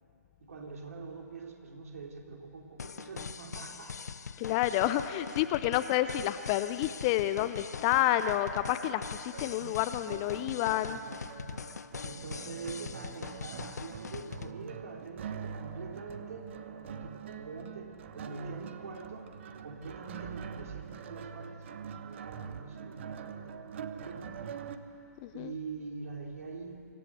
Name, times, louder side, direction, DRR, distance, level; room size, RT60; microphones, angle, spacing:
voice 1, 0.4-4.1 5.5-5.6 11.5-11.6 12.0-19.2 19.6-24.5 25.3-26.9, right 4 dB, 60° right, 1 dB, 3.4 m, -44 dB
sound 1, 2.8-14.5, left 6 dB, 70° left, 0.7 m, -42 dB
voice 2, 4.4-11.0 25.2-25.5, left 13 dB, 25° left, 11 dB, 0.6 m, -29 dB
sound 2, 9.3-24.8, right 7 dB, 45° right, 1.0 m, -44 dB
25.0 x 14.0 x 8.1 m, 2.7 s
figure-of-eight pair, 135°, 9 cm